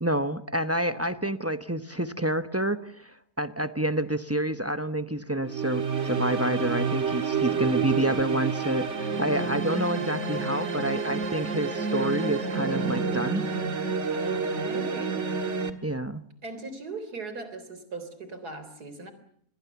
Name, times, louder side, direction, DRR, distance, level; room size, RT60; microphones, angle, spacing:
voice 1, 0.0-3.1 3.4-13.4 15.8-16.2, right 1 dB, 15° right, 11 dB, 0.7 m, -28 dB
sound 1, 5.4-15.7, right 5 dB, 50° right, 1.9 m, -29 dB
voice 2, 7.5-8.4 14.1-15.3 16.4-19.1, right 3 dB, 80° right, 11 dB, 4.2 m, -39 dB
27.0 x 21.5 x 7.0 m, 0.66 s
omnidirectional pair, 1.6 m